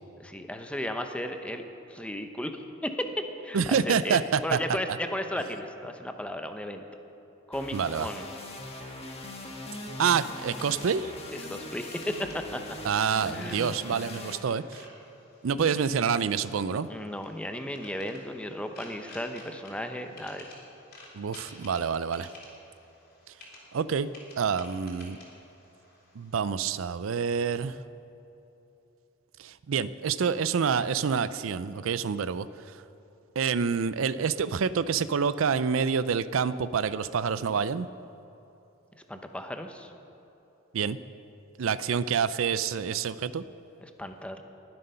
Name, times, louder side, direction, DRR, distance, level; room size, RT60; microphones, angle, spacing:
voice 1, 0.2-1.6 1.9-6.8 7.5-8.3 11.3-12.8 13.2-13.9 15.5-15.7 16.9-20.5 38.9-39.9 43.8-44.4, left 1 dB, 5° left, 6 dB, 0.8 m, -35 dB
voice 2, 3.5-4.6 7.7-8.1 10.0-11.1 12.8-14.8 15.4-16.9 21.1-22.3 23.7-24.1 24.4-25.2 26.2-27.8 29.4-32.5 33.4-37.9 40.7-41.0 41.6-43.4, right 6 dB, 70° right, 16 dB, 0.4 m, -27 dB
sound 1, 7.5-14.4, left 2 dB, 30° left, 1.5 m, -41 dB
sound 2, 10.0-26.7, left 2 dB, 55° left, 3.5 m, -52 dB
20.5 x 7.8 x 5.6 m, 3.0 s
head